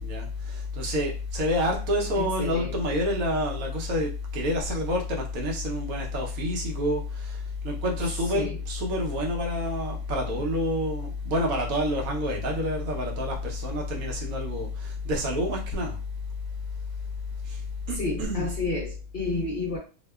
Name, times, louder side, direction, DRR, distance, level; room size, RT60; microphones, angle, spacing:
voice 1, 0.0-16.0 17.5-17.6 17.9-18.5, left 1 dB, 80° right, 1.1 m, -28 dB
voice 2, 2.2-3.0 8.3-8.6 17.9-19.8, left 2 dB, 60° left, 0.5 m, -31 dB
2.8 x 2.1 x 2.2 m
omnidirectional pair, 1.5 m